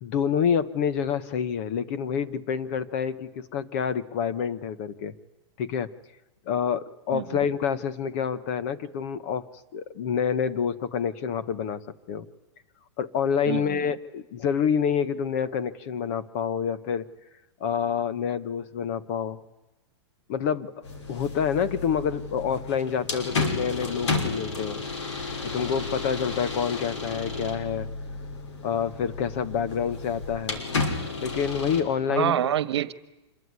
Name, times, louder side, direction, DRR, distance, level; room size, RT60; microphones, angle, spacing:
voice 1, 0.0-5.1 5.6-5.9 6.5-9.4 9.7-11.8 12.1-12.3 13.0-17.1 17.6-19.4 20.3-20.7 21.1-24.8 25.5-27.9 28.6-30.6 31.2-32.5, left 7 dB, 30° left, 14 dB, 1.1 m, -27 dB
voice 2, 7.1-7.5 13.4-13.9 32.1-32.9, right 10 dB, 65° right, 15 dB, 1.4 m, -27 dB
sound 1, 20.8-31.8, left 3 dB, 85° left, 5.9 m, -32 dB
26.5 x 22.5 x 9.6 m, 1.0 s
supercardioid pair, 175°, 15 cm